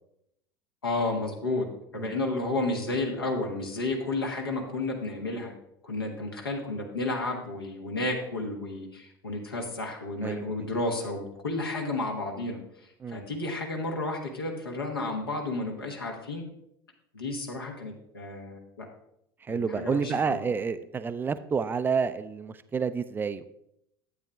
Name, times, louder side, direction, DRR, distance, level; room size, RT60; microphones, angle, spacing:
voice 1, 0.8-1.7 1.9-5.5 5.8-12.6 13.1-16.4 17.1-18.9 19.5-20.4, left 2 dB, 80° left, 1 dB, 1.4 m, -32 dB
voice 2, 10.2-10.5 13.0-13.2 19.4-23.4, right 5 dB, 15° right, 13 dB, 0.4 m, -29 dB
12.0 x 8.6 x 2.3 m, 0.78 s
figure-of-eight pair, 75°, 12 cm